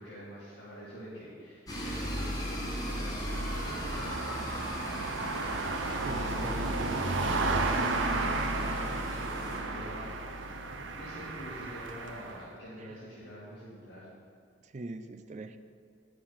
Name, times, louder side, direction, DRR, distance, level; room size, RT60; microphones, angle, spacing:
voice 1, 0.0-10.6 11.0-14.1, equal, 65° left, -10 dB, 2.2 m, -46 dB
sound 1, 1.7-9.6, equal, 20° left, 1.5 m, -38 dB
sound 2, 1.8-12.5, right 2 dB, 90° right, 0.7 m, -33 dB
voice 2, 6.0-6.6 12.8-13.0 14.6-15.6, right 2 dB, 40° right, 10 dB, 0.4 m, -42 dB
9.6 x 6.6 x 5.7 m, 2.4 s
head